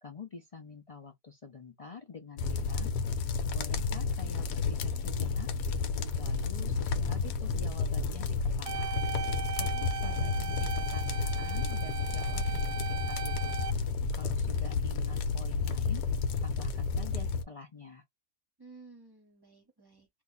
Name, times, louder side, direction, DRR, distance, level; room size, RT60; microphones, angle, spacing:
voice 1, 0.0-2.9 3.5-5.5 6.2-9.0 9.6-13.7 14.1-16.0 16.4-18.0, left 5 dB, 65° left, 0.3 m, -47 dB
sound 1, 2.4-17.4, left 4 dB, 85° left, 1.2 m, -31 dB
sound 2, 8.7-13.7, right 8 dB, 80° right, 1.1 m, -38 dB
voice 2, 9.7-10.4 18.6-20.1, right 3 dB, 20° right, 0.8 m, -55 dB
2.8 x 2.3 x 3.9 m
omnidirectional pair, 1.7 m